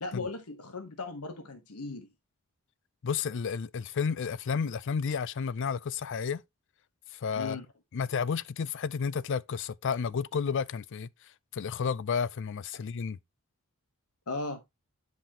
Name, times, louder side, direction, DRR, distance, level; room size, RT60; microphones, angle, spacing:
voice 1, 0.0-2.1 7.4-7.6 14.3-14.6, left 3 dB, 90° left, 1.1 m, -37 dB
voice 2, 3.0-6.4 7.1-7.6 7.9-11.1 11.5-13.2, left 6 dB, 55° left, 0.4 m, -31 dB
10.0 x 5.4 x 2.9 m
head